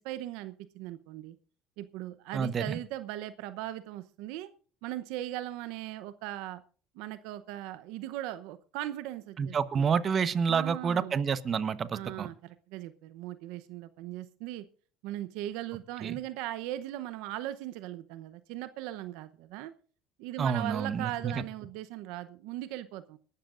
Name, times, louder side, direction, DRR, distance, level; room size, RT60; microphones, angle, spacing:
voice 1, 0.0-1.4 1.8-4.5 4.8-6.6 6.9-9.9 10.5-11.1 11.9-14.6 15.0-19.7 20.2-23.2, right 14 dB, 80° right, 13 dB, 0.8 m, -39 dB
voice 2, 2.3-2.8 9.4-12.3 16.0-16.2 20.4-21.4, right 6 dB, 40° right, 14 dB, 1.0 m, -29 dB
23.0 x 12.5 x 2.5 m, 0.42 s
supercardioid pair, 90°, 0 cm